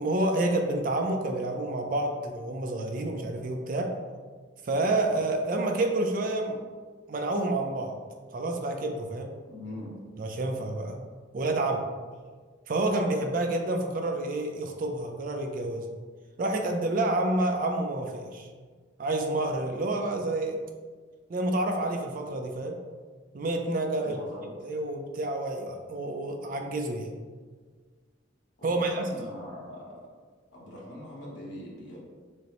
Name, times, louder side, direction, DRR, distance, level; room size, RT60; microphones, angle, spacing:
voice 1, 0.0-3.9 4.6-6.6 7.1-7.9 8.3-9.3 10.2-11.0 11.3-11.8 12.7-15.9 16.4-18.5 19.0-20.6 21.3-22.8 23.3-24.2 24.6-27.1 28.6-29.0, right 2 dB, 50° right, 3 dB, 0.4 m, -29 dB
voice 2, 9.5-9.9 24.0-24.5 28.6-29.9 30.5-32.0, left 1 dB, 80° left, -5 dB, 1.1 m, -41 dB
6.2 x 2.1 x 2.9 m, 1.5 s
head